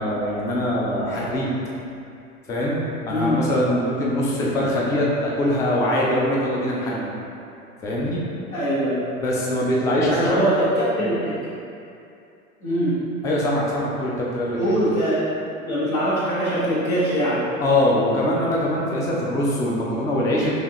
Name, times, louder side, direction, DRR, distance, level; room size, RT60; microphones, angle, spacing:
voice 1, 0.0-1.5 2.5-2.8 3.0-7.1 7.8-8.2 9.2-10.4 13.2-14.7 17.6-20.6, left 1 dB, 10° left, -5 dB, 0.3 m, -22 dB
voice 2, 3.1-3.4 8.5-9.1 10.0-11.5 12.6-13.0 14.5-15.2 15.6-17.5, equal, 90° left, -10 dB, 1.4 m, -22 dB
4.9 x 2.7 x 3.0 m, 2.6 s
figure-of-eight pair, 85°, 41 cm